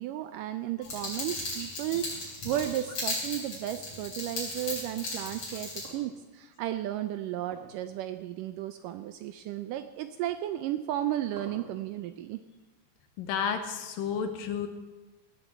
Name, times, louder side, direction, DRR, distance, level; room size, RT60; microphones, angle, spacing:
voice 1, 0.0-12.4, right 12 dB, 80° right, 10 dB, 2.0 m, -34 dB
sound 1, 0.8-5.8, left 2 dB, 50° left, 5.8 m, -36 dB
sound 2, 2.2-4.5 5.8-6.7 7.4-7.9 8.2-8.3 9.1-9.2 10.6-12.1, right 4 dB, 65° right, 4.4 m, -49 dB
voice 2, 13.2-14.7, left 7 dB, 75° left, 8 dB, 2.7 m, -31 dB
17.5 x 7.4 x 7.8 m, 1.2 s
omnidirectional pair, 4.2 m